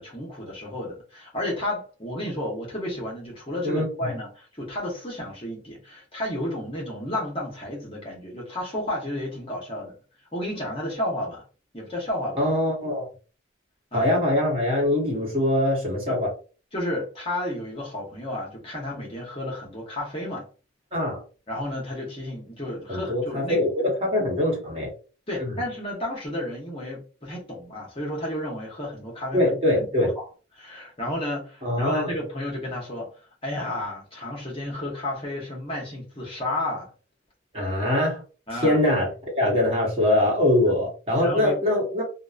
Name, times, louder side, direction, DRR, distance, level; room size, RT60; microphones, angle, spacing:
voice 1, 0.0-9.9 10.3-11.4 11.7-12.4 13.9-14.1 16.1-16.2 16.7-20.5 21.5-23.6 25.3-29.4 29.7-29.9 30.2-30.3 30.6-33.1 33.4-36.9 38.5-38.8 41.2-41.5, left 1 dB, 30° left, 0.9 m, -32 dB
voice 2, 3.6-4.1 12.4-13.1 13.9-16.3 20.9-21.2 22.9-24.9 25.4-25.6 29.3-30.1 31.6-32.1 37.5-38.2 38.5-42.0, left 1 dB, 30° right, 1.0 m, -23 dB
2.8 x 2.1 x 2.3 m
head